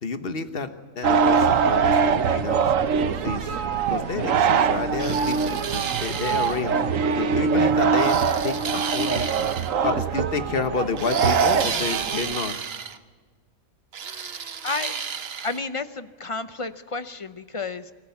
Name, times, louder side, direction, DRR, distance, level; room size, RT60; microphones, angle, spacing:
voice 1, 0.0-2.7 3.1-3.6 3.9-6.8 7.2-9.3 9.8-12.6, left 5 dB, 50° left, 9 dB, 1.4 m, -30 dB
sound 1, 1.0-12.4, right 6 dB, 80° right, 1.3 m, -23 dB
sound 2, 5.0-6.6 8.0-9.7 11.0-13.0 13.9-15.6, right 7 dB, 55° right, 1.1 m, -32 dB
voice 2, 14.2-14.9 15.4-17.9, left 3 dB, 30° left, 11 dB, 0.6 m, -32 dB
25.5 x 15.0 x 7.0 m, 1.4 s
omnidirectional pair, 1.3 m